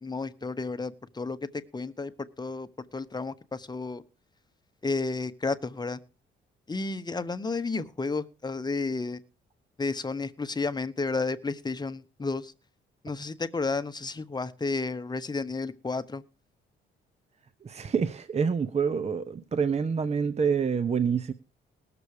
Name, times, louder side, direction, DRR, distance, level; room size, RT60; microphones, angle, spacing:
voice 1, 0.0-1.4 1.7-4.0 4.8-6.0 6.7-9.2 9.8-12.5 13.0-16.2, left 3 dB, 20° left, 1.0 m, -32 dB
voice 2, 17.6-21.3, right 6 dB, 35° right, 0.7 m, -27 dB
19.0 x 6.9 x 4.9 m
cardioid pair, 90°, 20 cm